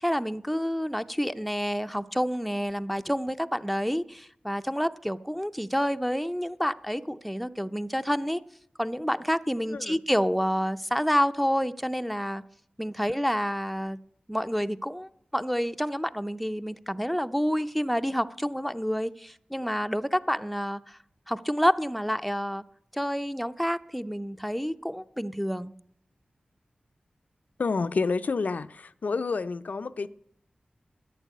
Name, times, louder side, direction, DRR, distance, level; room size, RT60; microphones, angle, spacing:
voice 1, 0.0-8.4 8.8-12.4 12.8-14.0 14.3-21.0 21.3-22.6 22.9-25.7, equal, ahead, 0.6 m, -28 dB
voice 2, 9.7-10.0 27.6-30.1, left 4 dB, 70° left, 0.5 m, -29 dB
11.0 x 9.1 x 9.4 m
cardioid pair, 50°, 3 cm